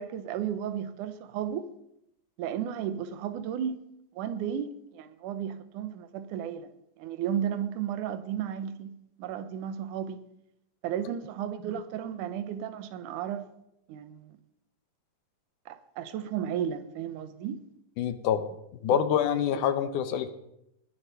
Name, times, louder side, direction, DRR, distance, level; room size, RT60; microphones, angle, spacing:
voice 1, 0.0-1.7 2.4-3.8 4.2-6.7 7.0-10.2 10.8-13.5 13.9-14.4 15.7-17.6 18.9-19.0 19.5-19.6, right 9 dB, 85° right, 2.4 m, -34 dB
voice 2, 18.0-18.4 18.8-20.3, left 9 dB, 80° left, 2.4 m, -26 dB
20.0 x 7.1 x 5.6 m
omnidirectional pair, 3.5 m